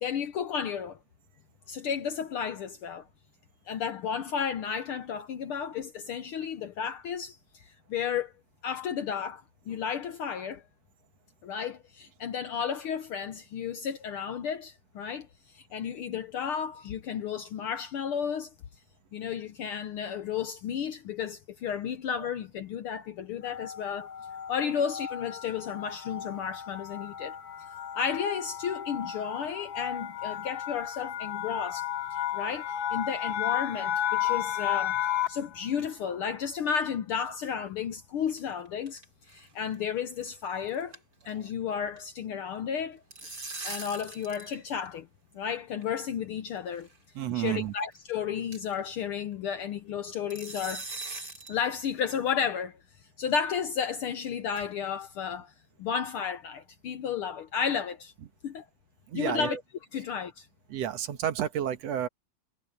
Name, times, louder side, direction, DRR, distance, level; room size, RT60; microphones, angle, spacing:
voice 1, 0.0-1.0 1.7-3.1 3.7-8.3 8.6-10.6 11.4-15.3 15.5-18.5 19.1-24.1 24.5-27.3 27.9-31.9 32.1-35.0 35.3-39.0 39.3-41.0 41.3-43.0 43.6-45.1 45.3-46.9 47.3-50.9 51.5-52.8 53.2-55.5 55.8-58.1 58.4-58.6 59.1-59.6 59.9-60.5, left 7 dB, 70° left, 1.3 m, -33 dB
sound 1, 23.4-35.5, left 10 dB, 45° left, 2.6 m, -33 dB
sound 2, 38.3-39.0 39.3-39.5 39.7-39.8 40.2-40.4 40.7-41.5 41.8-42.0 42.8-44.6 44.9-45.0 45.8-45.9 46.8-47.0 47.4-47.5 47.9-48.0 48.5-48.8 50.3-51.6, right 3 dB, 35° right, 4.9 m, -41 dB
voice 2, 47.2-47.7 59.1-59.6 60.7-62.1, right 10 dB, 65° right, 2.3 m, -30 dB
omnidirectional pair, 3.3 m